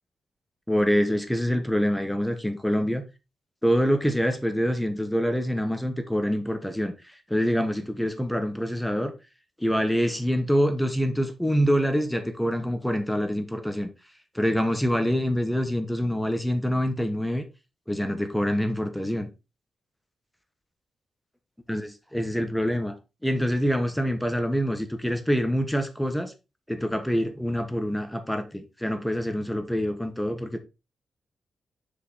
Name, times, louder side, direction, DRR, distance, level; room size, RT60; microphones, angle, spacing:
voice 1, 0.7-3.0 3.6-6.9 7.3-9.1 9.6-13.9 14.3-17.4 17.9-19.3 21.7-22.9 23.2-26.3 26.7-30.6, equal, 5° left, 1.2 m, -25 dB
6.7 x 5.1 x 4.0 m
wide cardioid pair, 130°, 0 cm